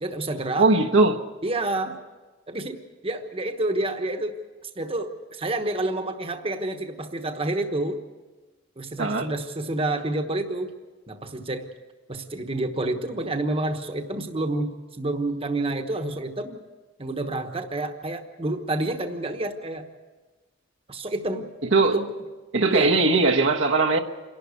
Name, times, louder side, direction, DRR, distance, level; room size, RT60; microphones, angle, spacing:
voice 1, 0.0-0.7 1.4-2.0 2.5-4.4 4.8-8.0 8.8-10.7 11.1-11.7 12.1-16.6 17.0-19.9 20.9-21.5 21.9-22.1 22.7-22.9, right 2 dB, 30° right, 1.2 m, -29 dB
voice 2, 0.6-1.3 9.0-9.3 21.7-22.0 22.5-24.0, right 3 dB, 80° right, 1.2 m, -20 dB
27.0 x 11.5 x 8.3 m
head